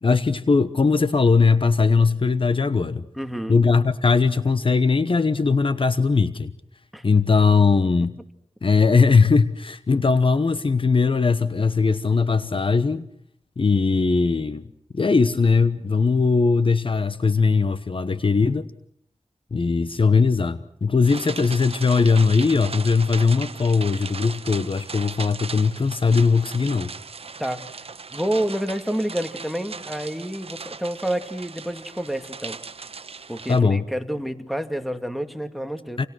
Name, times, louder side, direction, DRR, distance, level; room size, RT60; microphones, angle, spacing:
voice 1, 0.0-3.1 3.5-6.5 7.0-8.2 8.6-13.1 13.6-14.6 14.9-18.7 19.5-26.9 33.5-33.8 36.0-36.1, left 4 dB, 50° left, 13 dB, 1.1 m, -20 dB
voice 2, 3.1-3.6 6.9-7.0 27.4-27.7 28.1-32.6 33.3-36.0, right 1 dB, ahead, 8 dB, 2.3 m, -29 dB
sound 1, 21.0-33.6, right 4 dB, 55° right, 1.1 m, -38 dB
28.5 x 27.5 x 6.3 m, 0.65 s
wide cardioid pair, 65°, 12 cm